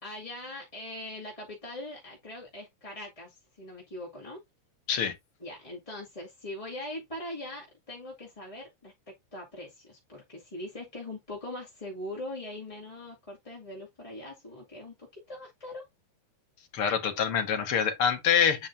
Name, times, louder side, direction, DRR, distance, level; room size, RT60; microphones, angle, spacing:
voice 1, 0.0-4.4 5.4-8.9 9.3-15.8, left 1 dB, 10° left, 1.9 m, -41 dB
voice 2, 16.7-18.7, left 7 dB, 55° left, 1.9 m, -25 dB
8.9 x 5.1 x 2.7 m
omnidirectional pair, 3.7 m